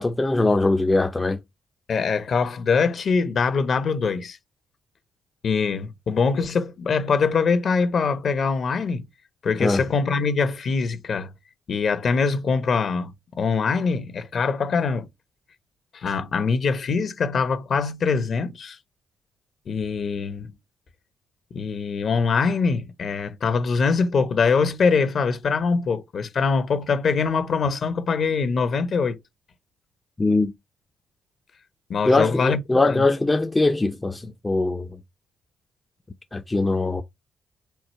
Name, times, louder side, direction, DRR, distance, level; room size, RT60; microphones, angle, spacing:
voice 1, 0.0-1.4 9.6-9.8 30.2-30.5 32.0-34.9 36.3-37.0, left 2 dB, 15° left, 0.6 m, -21 dB
voice 2, 1.9-4.4 5.4-9.0 9.4-11.3 11.7-15.1 15.9-18.8 19.7-20.5 21.5-29.2 31.9-33.0, left 5 dB, 50° left, 1.0 m, -23 dB
4.6 x 2.4 x 4.5 m
cardioid pair, 90°, 0 cm